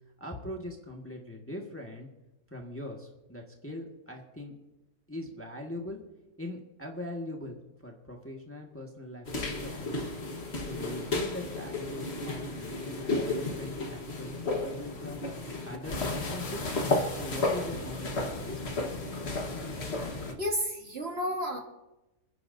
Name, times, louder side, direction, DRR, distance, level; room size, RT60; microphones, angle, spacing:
voice 1, 0.2-2.1 2.5-4.5 5.1-6.0 6.4-10.1 10.7-15.2 15.6-16.6 17.1-18.9, left 1 dB, 10° left, 0 dB, 1.5 m, -41 dB
sound 1, 9.2-20.3, left 2 dB, 45° left, 1.6 m, -33 dB
voice 2, 20.4-21.6, equal, 40° right, 2 dB, 1.7 m, -31 dB
28.0 x 10.0 x 2.7 m, 0.98 s
omnidirectional pair, 1.7 m